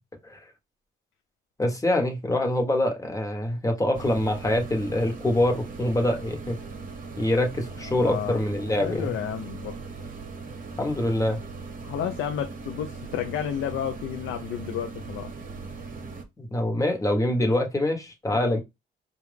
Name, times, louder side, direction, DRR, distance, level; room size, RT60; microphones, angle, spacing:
voice 1, 1.6-6.6 7.2-9.1 10.8-11.4 16.4-18.6, left 1 dB, 15° left, 1.3 m, -25 dB
sound 1, 3.9-16.2, right 4 dB, 45° right, 1.0 m, -39 dB
voice 2, 7.9-8.4 8.7-9.8 11.8-15.3 18.3-18.6, left 9 dB, 85° left, 0.6 m, -31 dB
4.8 x 2.5 x 3.4 m
cardioid pair, 90°, 20 cm